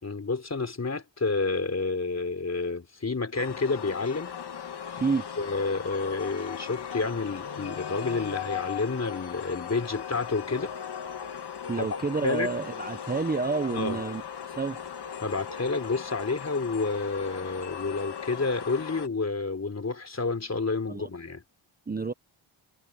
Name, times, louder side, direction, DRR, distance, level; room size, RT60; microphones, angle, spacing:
voice 1, 0.0-4.3 5.4-10.7 11.7-11.9 12.2-12.5 13.7-14.0 15.2-21.4, left 3 dB, 30° left, 3.4 m, -29 dB
sound 1, 3.3-19.1, left 8 dB, 55° left, 1.7 m, -38 dB
voice 2, 11.7-14.2 14.6-14.8 20.9-21.1 21.9-22.1, right 4 dB, 20° right, 0.7 m, -29 dB
wide cardioid pair, 100°, 49 cm